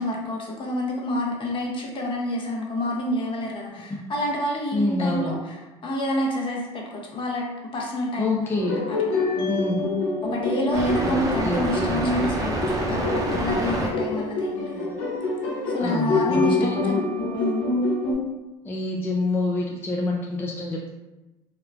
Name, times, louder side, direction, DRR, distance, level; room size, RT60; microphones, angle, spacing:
voice 1, 0.0-7.4 7.7-9.1 10.2-13.0 13.3-14.9 15.7-17.1 17.3-17.6, left 1 dB, 40° left, -1 dB, 0.7 m, -28 dB
voice 2, 4.7-5.4 8.2-8.8 9.4-9.8 11.0-12.0 15.8-16.8 18.6-20.9, left 2 dB, 15° left, -2 dB, 0.3 m, -27 dB
sound 1, 8.6-18.1, left 2 dB, 75° left, 0.7 m, -26 dB
sound 2, 10.7-13.9, right 2 dB, 25° right, 0.6 m, -27 dB
2.9 x 2.0 x 2.4 m, 1.0 s
supercardioid pair, 85°, 13 cm